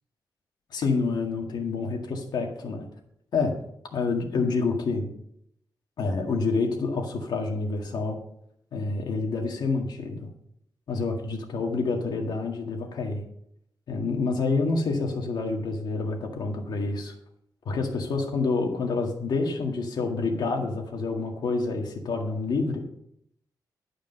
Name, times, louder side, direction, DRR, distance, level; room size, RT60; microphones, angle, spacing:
voice 1, 0.7-2.9 3.3-3.6 3.9-5.1 6.0-8.2 8.7-10.3 10.9-13.2 13.9-17.1 17.7-22.8, left 3 dB, 70° left, 2 dB, 1.8 m, -28 dB
11.5 x 5.1 x 6.7 m, 0.73 s
wide cardioid pair, 170°, 7 cm